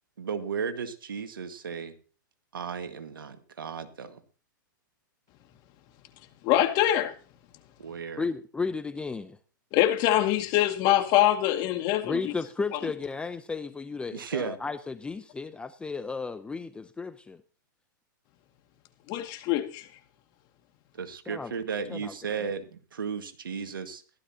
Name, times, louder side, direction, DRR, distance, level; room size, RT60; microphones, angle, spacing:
voice 1, 0.2-1.9 2.5-4.2 7.8-8.3 14.1-14.6 21.0-24.0, right 6 dB, 85° right, 1.8 m, -35 dB
voice 2, 6.4-7.1 9.7-12.3 19.1-19.9, left 13 dB, 40° left, 2.0 m, -24 dB
voice 3, 8.2-9.4 12.0-17.4 21.3-21.5 21.9-22.1, left 4 dB, 10° left, 0.6 m, -34 dB
15.5 x 12.5 x 2.8 m
hypercardioid pair, 125°, 11 cm